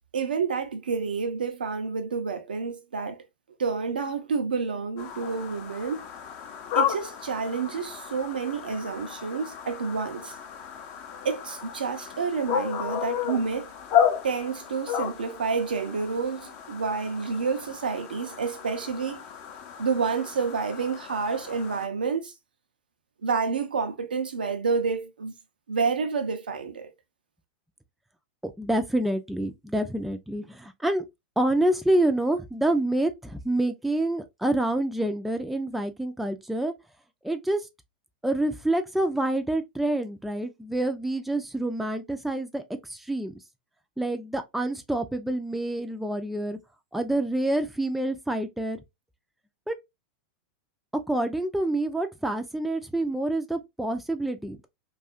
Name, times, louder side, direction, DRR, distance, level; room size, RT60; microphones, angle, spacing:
voice 1, 0.1-3.2 3.6-6.1 6.7-10.4 11.2-13.7 14.2-19.2 19.8-22.3 23.2-25.4 25.7-26.9, right 5 dB, 90° right, 0.5 m, -29 dB
sound 1, 5.0-21.9, left 8 dB, 50° left, 0.6 m, -33 dB
voice 2, 28.6-31.0 31.4-36.7 37.2-37.7 38.2-43.3 44.0-46.6 46.9-48.8 49.7-49.8 51.1-54.7, right 1 dB, ahead, 0.3 m, -27 dB
2.7 x 2.3 x 2.3 m
hypercardioid pair, 100°, 5 cm